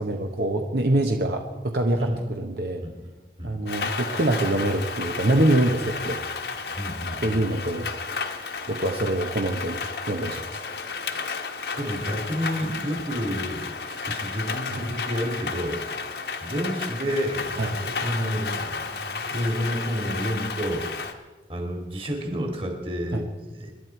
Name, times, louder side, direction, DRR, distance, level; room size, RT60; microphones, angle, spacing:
voice 1, 0.0-2.8 3.4-6.2 7.2-7.9 8.7-9.8 10.1-10.6 14.7-14.8 17.6-17.7 23.1-23.2, right 1 dB, 65° right, 3 dB, 1.0 m, -24 dB
voice 2, 2.8-3.5 6.7-7.4 8.1-8.3 11.7-21.2 21.5-23.7, equal, 30° right, 3 dB, 2.3 m, -30 dB
Rain, 3.7-21.1, left 4 dB, 70° left, 1.4 m, -32 dB
26.0 x 11.0 x 4.5 m, 1.2 s
head